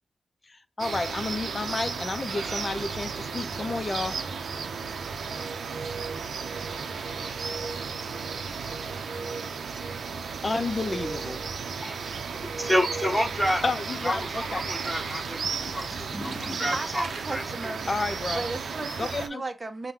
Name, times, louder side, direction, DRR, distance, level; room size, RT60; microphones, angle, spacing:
voice 1, 0.5-4.2 10.4-11.4 13.6-14.6 17.9-18.4 19.0-19.4, left 3 dB, 35° left, 0.4 m, -31 dB
sound 1, 0.8-19.3, right 5 dB, 80° right, 0.5 m, -34 dB
voice 2, 11.8-13.6 14.0-17.7, equal, 5° left, 1.2 m, -30 dB
voice 3, 16.7-18.0 18.3-19.9, right 2 dB, 25° right, 0.7 m, -35 dB
5.6 x 2.1 x 3.5 m
cardioid pair, 75°, 0 cm